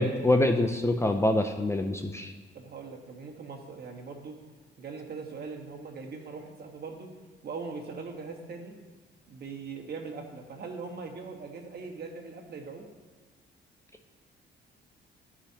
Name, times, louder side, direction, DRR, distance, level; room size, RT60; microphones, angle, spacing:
voice 1, 0.0-2.3, left 1 dB, 15° left, 5 dB, 0.5 m, -25 dB
voice 2, 2.5-4.4 4.8-7.1 7.4-8.7 9.3-12.9, right 4 dB, 55° right, 2 dB, 1.4 m, -41 dB
14.0 x 5.0 x 2.9 m, 1.3 s
cardioid pair, 90°, 20 cm